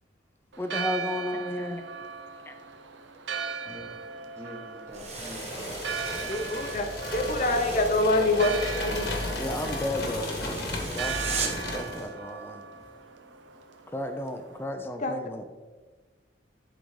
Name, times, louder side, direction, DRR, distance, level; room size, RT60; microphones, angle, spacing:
Church bell, 0.5-14.6, right 6 dB, 80° right, 0.6 m, -39 dB
voice 1, 0.6-1.8 2.5-2.6 9.4-12.6 13.9-15.4, left 1 dB, 10° left, 6 dB, 0.5 m, -33 dB
voice 2, 4.2-6.8 7.1-7.2 11.0-11.1 11.8-12.0 12.6-12.7, equal, 15° right, -6 dB, 1.1 m, -46 dB
sound 1, 4.9-11.7, right 4 dB, 35° right, 1.0 m, -39 dB
sound 2, 5.0-12.1, left 1 dB, 60° left, 1.4 m, -34 dB
voice 3, 6.3-9.1 15.0-15.2, left 2 dB, 40° left, 5 dB, 0.7 m, -26 dB
11.0 x 3.9 x 3.2 m, 1.3 s
head